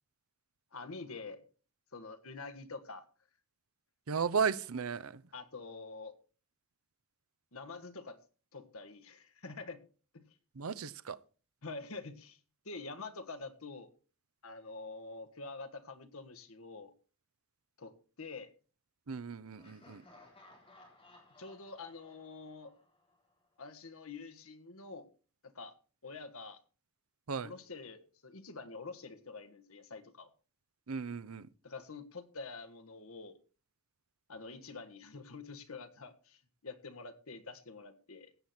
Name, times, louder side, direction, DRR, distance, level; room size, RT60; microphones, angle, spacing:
voice 1, 0.7-1.4 1.9-3.0 5.3-6.1 7.5-8.2 8.5-9.8 10.1-10.3 11.6-12.4 12.6-13.9 14.4-16.9 17.8-17.9 18.2-18.5 21.4-22.7 23.6-25.0 25.4-25.7 26.0-26.6 27.4-30.3 31.6-33.4 34.3-38.3, left 3 dB, 85° left, 1.6 m, -46 dB
voice 2, 4.1-5.2 10.6-11.2 19.1-20.0 27.3-27.5 30.9-31.5, right 6 dB, 85° right, 0.7 m, -35 dB
Laughter, 19.6-23.4, left 2 dB, 25° left, 4.2 m, -60 dB
16.5 x 7.9 x 4.3 m
head